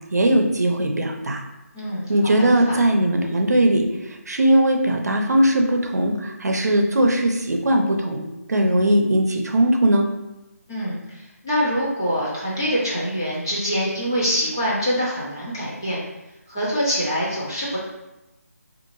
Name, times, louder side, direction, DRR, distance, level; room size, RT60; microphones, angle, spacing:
voice 1, 0.1-1.4 2.1-8.2 8.5-10.1, right 1 dB, 80° right, 2 dB, 0.6 m, -19 dB
voice 2, 1.7-2.1 2.4-2.8 10.7-16.0 16.5-17.8, equal, 15° left, -8 dB, 0.4 m, -25 dB
3.5 x 2.5 x 3.0 m, 0.98 s
figure-of-eight pair, 175°, 9 cm